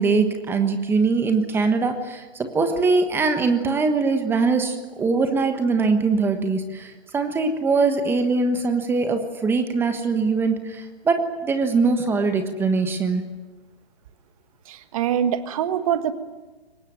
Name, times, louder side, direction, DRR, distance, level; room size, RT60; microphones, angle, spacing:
voice 1, 0.0-13.2, right 4 dB, 5° right, 7 dB, 1.3 m, -22 dB
voice 2, 14.7-16.1, right 9 dB, 35° right, 11 dB, 1.5 m, -24 dB
24.0 x 19.5 x 9.3 m, 1.3 s
hypercardioid pair, 150°, 32 cm